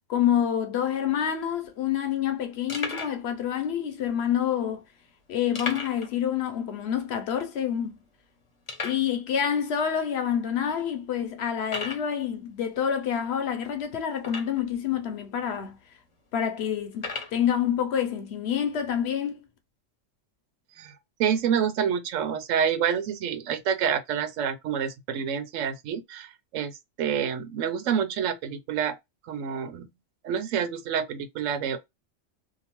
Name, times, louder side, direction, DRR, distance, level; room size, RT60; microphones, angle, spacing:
voice 1, 0.1-4.8 5.3-8.0 8.8-15.8 16.3-19.4, left 9 dB, 65° left, 0.8 m, -27 dB
sound 1, 1.2-1.3 1.5-1.7 2.2-2.3 2.7-3.2 4.0-4.1 5.5-6.1 6.4-6.5 7.0-7.1 7.6-7.7 8.7-9.1 9.9-10.0 10.6-10.7 11.6-12.1 14.2-14.7 15.5-15.6 16.9-17.4, left 4 dB, 30° left, 0.6 m, -35 dB
voice 2, 21.2-29.0 29.3-29.9 30.2-31.8, right 8 dB, 90° right, 1.0 m, -28 dB
2.8 x 2.0 x 2.9 m
omnidirectional pair, 1.3 m